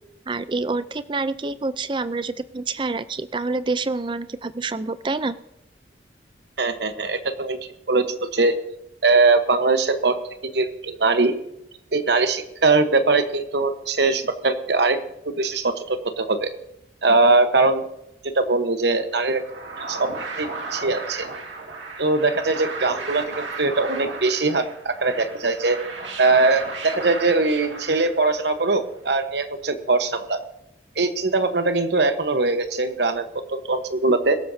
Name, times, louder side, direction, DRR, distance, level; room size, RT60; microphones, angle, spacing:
voice 1, 0.3-5.4, right 3 dB, 25° right, 14 dB, 0.4 m, -27 dB
voice 2, 6.6-7.6 7.9-8.5 9.0-10.2 10.4-11.3 11.9-15.0 15.2-16.5 17.0-17.9 18.3-19.4 19.9-20.1 20.4-21.3 22.0-25.8 26.2-30.4 31.0-34.4, right 3 dB, 65° right, 8 dB, 1.1 m, -21 dB
sound 1, 19.2-28.6, right 3 dB, 80° right, 2.2 m, -35 dB
22.0 x 13.0 x 2.7 m, 0.85 s
head